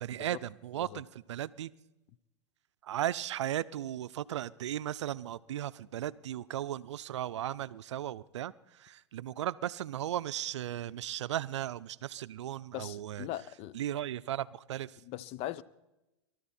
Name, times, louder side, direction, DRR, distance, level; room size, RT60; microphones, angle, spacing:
voice 1, 0.0-1.7 2.8-13.3 13.7-15.0, right 12 dB, 80° right, 0.5 m, -36 dB
voice 2, 12.7-13.8 15.0-15.6, left 14 dB, 45° left, 0.7 m, -39 dB
23.0 x 13.0 x 4.3 m
hypercardioid pair, 110°, 15 cm